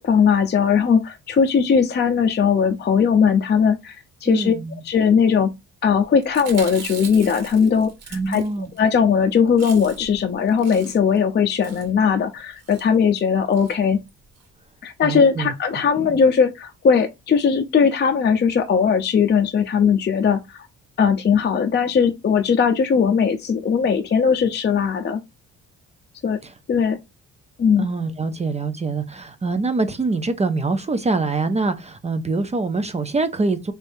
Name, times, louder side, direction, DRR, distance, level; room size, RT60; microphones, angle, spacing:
voice 1, 0.0-4.0 4.2-4.5 4.8-5.5 5.8-14.0 14.8-20.7 21.0-25.2 26.2-26.4 26.7-27.0 27.6-27.9, left 6 dB, 35° left, 0.6 m, -19 dB
voice 2, 4.3-4.8 8.1-8.7 15.0-15.5 16.1-16.2 26.4-26.5 27.8-33.7, right 3 dB, 20° right, 0.6 m, -24 dB
Chewing mastication, 6.2-8.9 9.2-9.3 9.5-10.2 10.5-11.2 11.6-11.9 12.6-12.9 13.5-13.7 14.1-14.2 14.4-14.5, right 6 dB, 60° right, 1.4 m, -39 dB
3.4 x 3.3 x 2.6 m
cardioid pair, 90°, 30 cm